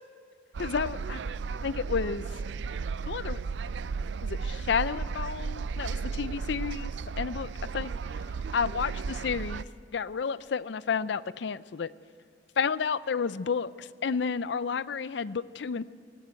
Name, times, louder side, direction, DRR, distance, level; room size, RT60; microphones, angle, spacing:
sound 1, 0.5-9.6, right 5 dB, 75° right, 0.4 m, -34 dB
voice 1, 0.6-1.2 1.6-2.3 3.1-3.4 4.2-6.9 7.2-7.9 8.5-9.6 9.9-11.9 12.6-15.9, left 6 dB, 70° left, 17 dB, 0.5 m, -31 dB
18.5 x 18.5 x 8.3 m, 2.2 s
head